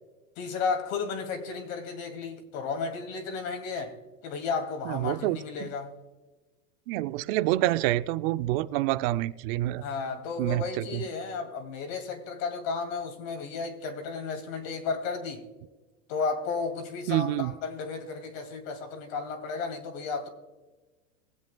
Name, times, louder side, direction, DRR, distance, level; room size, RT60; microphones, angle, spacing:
voice 1, 0.4-5.9 9.8-15.4 16.1-20.3, left 4 dB, 60° left, 2.4 m, -33 dB
voice 2, 4.9-5.7 6.9-9.8 10.4-11.0 17.1-17.5, right 16 dB, 45° right, 0.5 m, -27 dB
22.5 x 7.8 x 2.2 m
supercardioid pair, 130°, 44 cm